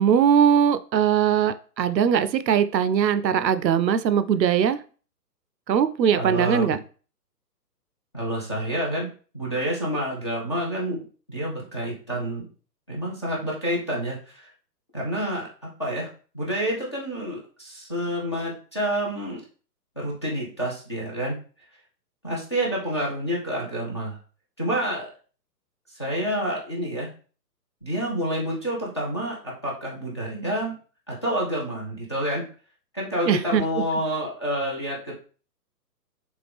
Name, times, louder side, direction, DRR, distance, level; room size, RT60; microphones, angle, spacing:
voice 1, 0.0-4.8 5.7-6.8 33.3-33.6, right 8 dB, 85° right, 12 dB, 0.6 m, -20 dB
voice 2, 6.2-6.8 8.1-9.1 9.3-11.0 11.3-12.4 12.9-14.5 14.9-16.1 16.3-19.4 20.0-21.4 22.2-24.2 24.6-25.1 25.9-27.1 27.8-30.7 31.1-32.5 32.9-35.2, equal, 20° left, -5 dB, 0.4 m, -28 dB
3.5 x 3.3 x 3.4 m, 0.38 s
figure-of-eight pair, 135°, 50 cm